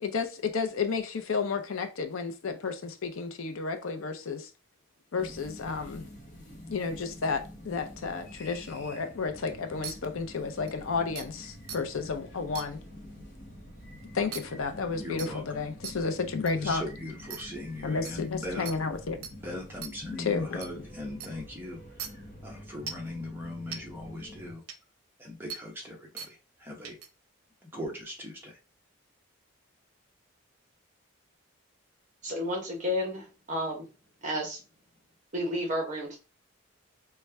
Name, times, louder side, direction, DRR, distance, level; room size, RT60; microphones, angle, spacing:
voice 1, 0.0-4.5 5.1-6.1 6.7-12.8 14.1-16.8 17.8-19.2 20.3-20.6, left 4 dB, 70° left, 0.6 m, -32 dB
sound 1, 5.2-24.5, equal, 35° left, 0.9 m, -47 dB
sound 2, 9.8-9.9 10.7-10.8 11.2-11.3 11.7-11.8 12.5-12.7 14.3-14.4 15.2-15.3 15.8-15.9 16.5-16.6 17.3-17.4 18.0-18.1 18.7-18.8 19.2-19.3 19.8-19.9 20.6-20.7 21.2-21.3 22.0-22.1 22.9-23.1 23.7-23.8 24.7-24.8 25.5-25.6 26.2-26.3 26.8-27.1, right 7 dB, 80° right, 0.6 m, -38 dB
voice 2, 14.9-16.0 16.5-18.7 19.3-22.1 22.4-24.6 25.2-27.0 27.6-28.6, left 1 dB, 10° right, 0.9 m, -40 dB
voice 3, 32.2-33.9 34.2-34.6 35.3-36.2, left 1 dB, 35° right, 1.1 m, -31 dB
4.1 x 2.3 x 3.4 m
head